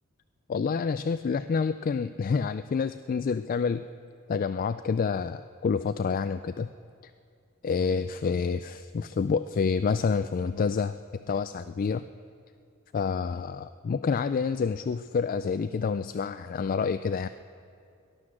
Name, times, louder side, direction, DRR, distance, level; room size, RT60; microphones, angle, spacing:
voice 1, 0.5-3.8 4.3-6.7 7.0-7.1 7.6-11.0 11.3-12.0 12.9-17.3, left 5 dB, 40° left, 11 dB, 0.3 m, -28 dB
19.0 x 12.0 x 6.3 m, 2.4 s
head